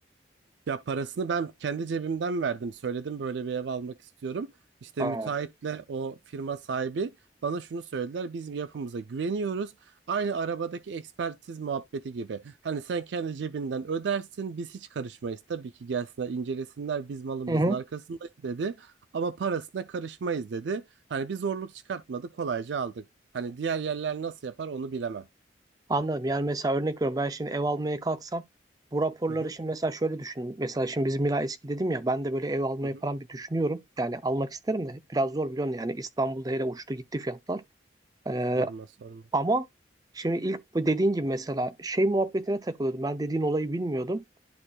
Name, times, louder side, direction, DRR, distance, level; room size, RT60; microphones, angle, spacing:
voice 1, 0.7-4.5 4.8-7.1 7.4-20.8 21.1-23.1 23.3-25.3 29.4-29.5 32.9-33.0 38.6-39.2, right 5 dB, 75° right, 0.4 m, -32 dB
voice 2, 5.0-5.3 17.5-17.8 25.9-28.4 28.9-37.6 38.3-38.7 39.3-39.7 40.1-44.2, right 2 dB, 20° right, 0.5 m, -28 dB
11.5 x 4.4 x 2.3 m
head